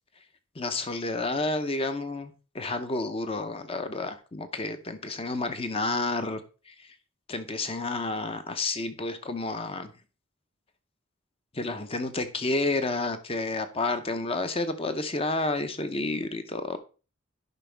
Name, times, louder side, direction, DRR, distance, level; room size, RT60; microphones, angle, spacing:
voice 1, 0.6-6.4 6.7-6.8 7.3-9.9 11.5-16.8, left 2 dB, 25° left, 9 dB, 0.7 m, -30 dB
11.0 x 5.1 x 3.4 m, 0.34 s
head